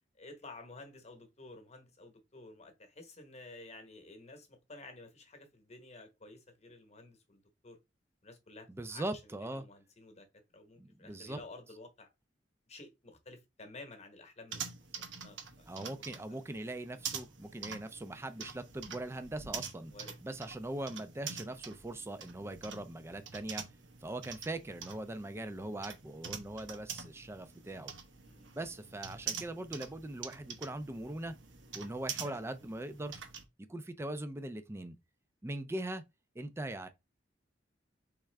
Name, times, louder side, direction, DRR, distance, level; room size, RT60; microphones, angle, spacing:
voice 1, 0.2-7.8 8.2-10.3 10.5-12.1 12.7-14.6 15.0-16.4 19.9-20.1 28.2-28.5 32.2-32.5, left 2 dB, 35° left, 1.0 m, -52 dB
voice 2, 8.7-9.6 10.8-11.4 15.7-19.9 20.2-23.6 24.0-27.9 28.5-31.3 31.7-33.2 33.7-35.0 35.4-36.0 36.4-36.9, right 1 dB, 15° right, 0.4 m, -41 dB
sound 1, 14.5-33.4, right 7 dB, 80° right, 0.9 m, -46 dB
4.2 x 3.6 x 3.3 m
head